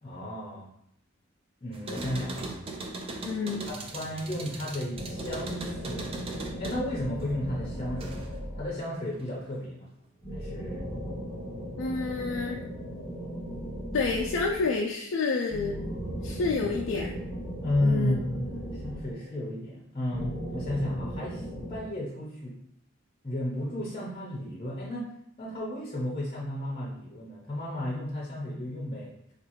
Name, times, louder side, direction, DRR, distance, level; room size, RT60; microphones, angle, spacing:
voice 1, 0.0-0.7 1.6-2.6 3.7-6.1 6.6-9.9 10.3-10.9 17.6-22.5 23.2-25.1 25.4-29.3, left 1 dB, 25° left, -3 dB, 0.6 m, -33 dB
sound 1, 1.7-8.4 8.8-9.6, right 2 dB, 30° right, 0.3 m, -40 dB
voice 2, 3.2-3.7 11.8-12.6 13.9-15.8 16.2-17.2 17.8-18.2, left 4 dB, 70° left, -1 dB, 0.3 m, -29 dB
sound 2, 4.9-9.1 10.2-14.9 15.5-19.5 20.1-21.8, equal, 5° right, 1.5 m, -37 dB
3.6 x 2.4 x 2.9 m, 0.73 s
head